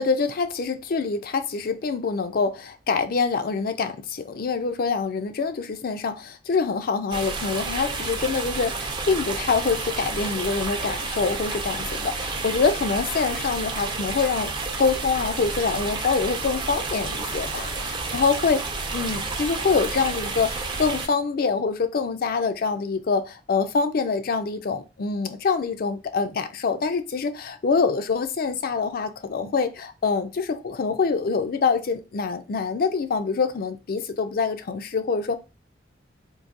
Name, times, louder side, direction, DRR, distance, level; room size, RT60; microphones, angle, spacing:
voice 1, 0.0-14.5 14.8-18.6 18.9-35.4, left 4 dB, 55° left, 0.4 m, -25 dB
sound 1, 7.1-21.1, right 3 dB, 25° right, 0.5 m, -30 dB
3.9 x 2.6 x 2.5 m
head